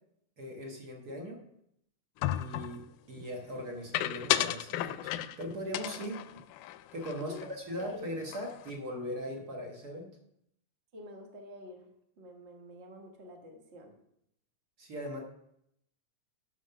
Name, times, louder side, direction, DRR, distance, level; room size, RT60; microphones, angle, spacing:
voice 1, 0.4-1.4 2.3-6.2 6.9-10.2 14.8-15.2, equal, 50° right, 1 dB, 1.2 m, -40 dB
sound 1, 2.2-2.8 3.9-5.4 5.7-7.5 7.8-7.9 8.2-8.7, left 13 dB, 85° left, 2.1 m, -33 dB
voice 2, 7.2-8.1 10.9-11.9 12.2-14.0, equal, 70° right, 1 dB, 0.6 m, -47 dB
10.5 x 6.3 x 5.7 m, 0.76 s
omnidirectional pair, 3.8 m